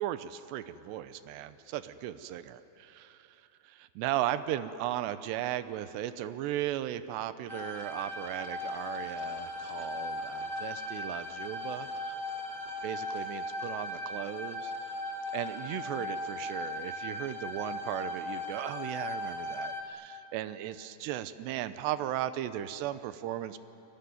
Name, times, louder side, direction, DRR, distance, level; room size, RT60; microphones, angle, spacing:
voice 1, 0.0-3.3 3.6-12.1 12.8-14.7 15.3-23.6, right 12 dB, 80° right, 12 dB, 3.0 m, -36 dB
sound 1, 7.5-19.8, left 1 dB, 45° right, 0.6 m, -38 dB
29.5 x 20.5 x 9.5 m, 3.0 s
omnidirectional pair, 5.0 m